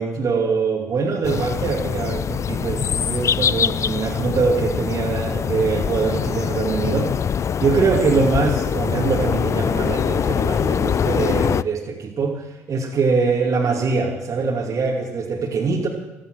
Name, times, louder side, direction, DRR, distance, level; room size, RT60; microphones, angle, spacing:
voice 1, 0.0-7.1 7.6-15.9, right 4 dB, 45° right, -2 dB, 2.7 m, -23 dB
sound 1, 1.2-11.6, left 7 dB, 40° left, 0.4 m, -23 dB
15.0 x 14.5 x 6.4 m, 1.0 s
hypercardioid pair, 50°, 8 cm